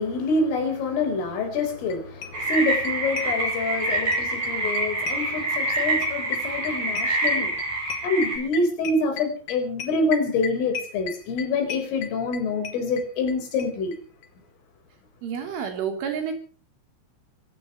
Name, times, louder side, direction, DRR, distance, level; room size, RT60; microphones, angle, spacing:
voice 1, 0.0-7.5 8.0-13.9, left 3 dB, 75° left, 8 dB, 7.0 m, -26 dB
sound 1, 1.6-1.7 1.9-2.0 2.2-3.9 4.1-13.3 13.6-13.7 13.9-14.0 14.2-14.3, left 7 dB, 55° left, 4.0 m, -34 dB
sound 2, 2.3-8.4, right 2 dB, 40° right, 8.9 m, -26 dB
voice 2, 15.2-16.3, right 7 dB, 70° right, 5 dB, 5.8 m, -29 dB
25.5 x 17.0 x 3.2 m, 0.40 s
omnidirectional pair, 5.8 m